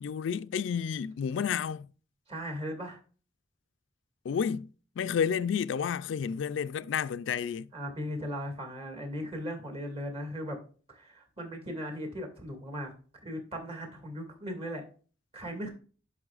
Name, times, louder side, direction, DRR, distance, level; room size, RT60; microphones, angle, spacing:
voice 1, 0.0-1.9 4.2-4.7 5.0-7.7, left 7 dB, 70° left, 0.3 m, -31 dB
voice 2, 2.3-3.0 7.7-10.6 10.9-12.9 13.2-14.8 15.3-15.7, equal, 30° right, 2.2 m, -37 dB
11.0 x 5.5 x 2.4 m
head